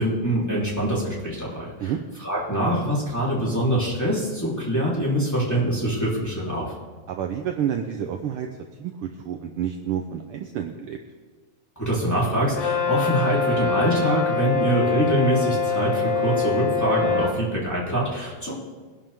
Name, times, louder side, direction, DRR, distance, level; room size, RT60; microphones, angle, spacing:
voice 1, 0.0-1.7 2.2-6.7 11.8-18.5, right 1 dB, 5° left, -7 dB, 3.2 m, -24 dB
voice 2, 7.1-8.5 8.8-11.0, right 9 dB, 75° right, 4 dB, 1.3 m, -29 dB
Brass instrument, 12.5-17.4, left 5 dB, 75° left, 0.8 m, -24 dB
21.5 x 11.0 x 3.6 m, 1.4 s
omnidirectional pair, 3.3 m